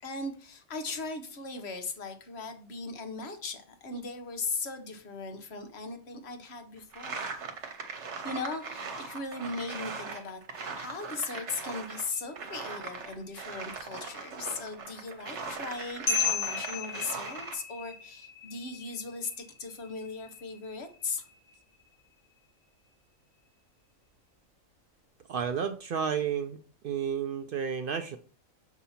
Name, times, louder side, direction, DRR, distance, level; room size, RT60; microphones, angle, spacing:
voice 1, 0.0-7.3 8.2-21.2, left 3 dB, 50° left, 6 dB, 1.2 m, -38 dB
sound 1, 6.9-12.1 12.4-17.6, right 5 dB, 55° right, 1.3 m, -40 dB
sound 2, 12.1-12.7 16.1-21.8, left 5 dB, 75° left, 2.1 m, -36 dB
voice 2, 25.3-28.2, right 7 dB, 75° right, 7 dB, 0.5 m, -32 dB
7.1 x 2.8 x 5.6 m, 0.41 s
omnidirectional pair, 1.4 m